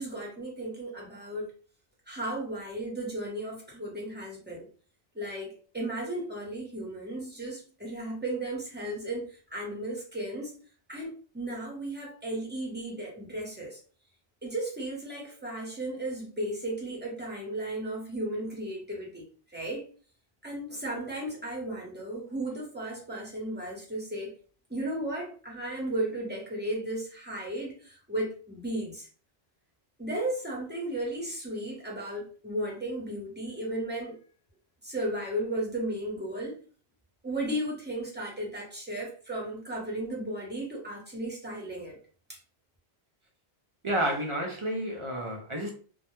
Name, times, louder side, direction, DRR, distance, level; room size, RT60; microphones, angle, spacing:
voice 1, 0.0-1.5 2.1-4.7 5.1-10.5 10.9-13.8 14.4-19.3 19.5-19.9 20.4-24.4 24.7-29.1 30.0-34.2 34.8-36.6 37.2-42.0 42.3-42.4, right 1 dB, 10° right, 0.7 m, -35 dB
voice 2, 43.8-45.7, right 1 dB, 60° right, 0.3 m, -30 dB
2.1 x 2.0 x 3.0 m
omnidirectional pair, 1.1 m